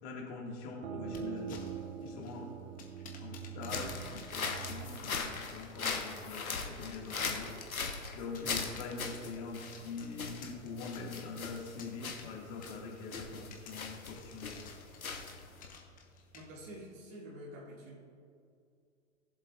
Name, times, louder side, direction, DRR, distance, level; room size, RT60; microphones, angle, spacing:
voice 1, 0.0-1.7 2.0-2.5 3.2-14.6, left 4 dB, 35° left, -1 dB, 2.1 m, -44 dB
sound 1, 0.8-6.2, right 8 dB, 55° right, 0.8 m, -44 dB
sound 2, 1.0-16.8, left 4 dB, 20° left, 1.1 m, -56 dB
sound 3, 3.6-15.7, left 4 dB, 80° left, 1.3 m, -40 dB
voice 2, 16.3-18.0, equal, 35° right, -3 dB, 2.0 m, -48 dB
17.5 x 7.5 x 2.5 m, 2.4 s
figure-of-eight pair, 115°, 41 cm